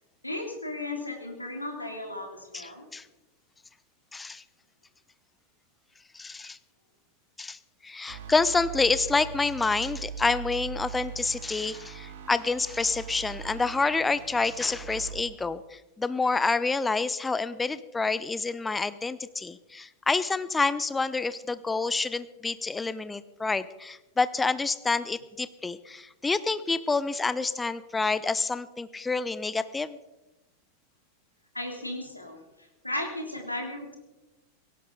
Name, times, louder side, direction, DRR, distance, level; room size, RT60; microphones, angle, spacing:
voice 1, 0.2-2.8 31.5-32.4 32.8-33.9, left 1 dB, 85° left, 2 dB, 3.0 m, -35 dB
voice 2, 2.5-3.1 4.1-4.4 6.1-6.6 7.4-30.0, left 4 dB, 10° left, 15 dB, 0.8 m, -28 dB
sound 1, 8.1-15.2, right 8 dB, 55° right, 2.2 m, -41 dB
18.0 x 16.5 x 3.9 m, 1.0 s
figure-of-eight pair, 90°, 0 cm